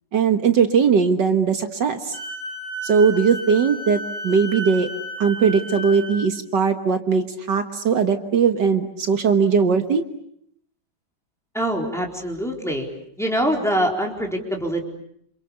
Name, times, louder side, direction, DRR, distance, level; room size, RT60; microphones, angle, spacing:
voice 1, 0.1-2.1 2.8-4.9 5.2-10.0, right 6 dB, 70° right, 7 dB, 2.1 m, -19 dB
Wind instrument woodwind instrument, 2.1-6.2, equal, 45° right, 6.3 m, -33 dB
voice 2, 11.5-12.9 13.2-14.8, equal, ahead, 0 dB, 4.1 m, -24 dB
28.5 x 28.0 x 7.0 m, 0.70 s
omnidirectional pair, 2.0 m